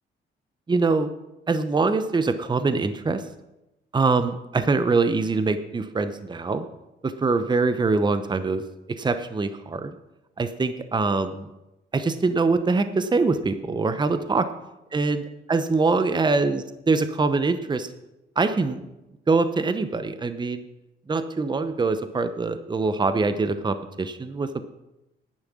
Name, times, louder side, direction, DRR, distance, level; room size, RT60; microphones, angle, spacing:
voice 1, 0.7-1.1 1.5-3.3 3.9-6.7 7.0-8.6 8.9-9.9 10.4-11.5 11.9-14.5 14.9-15.2 15.5-17.9 18.4-18.8 19.3-20.6 21.1-24.7, right 3 dB, 20° right, 10 dB, 0.9 m, -23 dB
10.5 x 9.5 x 6.2 m, 0.94 s
cardioid pair, 90°, 20 cm